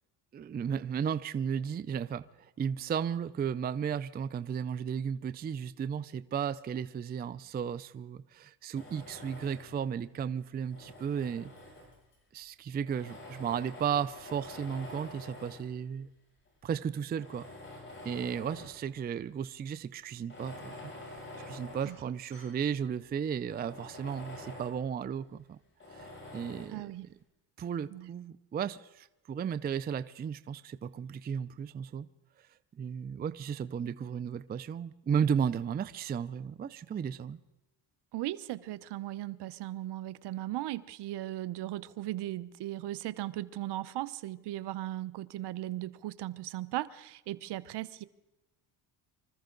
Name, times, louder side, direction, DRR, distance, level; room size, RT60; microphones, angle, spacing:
voice 1, 0.3-11.5 12.3-16.1 16.6-17.5 18.0-20.9 21.5-25.6 25.9-26.1 26.3-26.9 27.6-32.1 32.8-37.4, right 7 dB, 20° right, 0.4 m, -34 dB
Tools, 8.8-9.9 10.5-12.1 12.8-15.8 16.5-16.6 17.1-18.9 19.2-19.3 20.2-22.6 23.0-23.1 23.5-24.8 25.8-26.8, left 2 dB, 25° left, 7.0 m, -47 dB
voice 2, 26.7-27.1 27.9-28.1 38.1-48.0, right 15 dB, 65° right, 0.9 m, -37 dB
25.5 x 14.0 x 3.9 m
cardioid pair, 115°, 45 cm